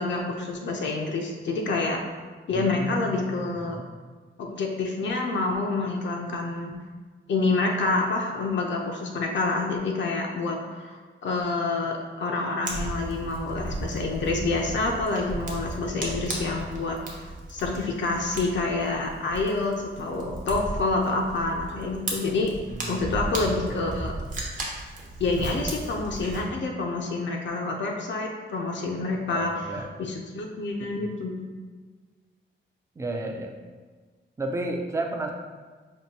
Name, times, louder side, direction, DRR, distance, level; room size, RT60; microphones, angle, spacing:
voice 1, 0.0-2.0 2.5-3.8 4.4-6.7 7.3-22.5 22.9-24.1 25.2-31.3, left 3 dB, 65° left, 1 dB, 0.4 m, -28 dB
voice 2, 2.5-3.8 22.6-23.8 29.3-29.9 30.8-31.1 33.0-33.5 34.4-35.3, right 2 dB, 15° right, 2 dB, 0.3 m, -33 dB
Fire, 12.7-26.4, right 2 dB, 40° right, 0.7 m, -35 dB
5.2 x 2.5 x 2.8 m, 1.5 s
wide cardioid pair, 165°, 20 cm